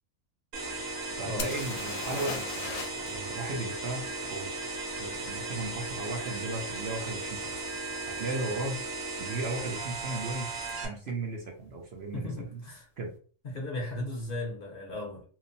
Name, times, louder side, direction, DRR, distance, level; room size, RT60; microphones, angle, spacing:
sound 1, 0.5-10.9, right 2 dB, 90° right, 1.1 m, -36 dB
voice 1, 1.2-4.5 5.0-7.6 8.1-8.8 9.2-10.5 10.8-12.6 13.0-13.1, right 2 dB, 60° right, 0.8 m, -36 dB
sound 2, 1.4-3.1 3.4-3.5 6.9-7.0 7.6-7.8 8.1-8.7 10.7-10.8 11.1-11.2, left 5 dB, 80° left, 0.9 m, -38 dB
voice 2, 12.1-12.9 13.4-15.2, left 1 dB, 50° left, 0.8 m, -36 dB
2.9 x 2.0 x 2.6 m
omnidirectional pair, 1.3 m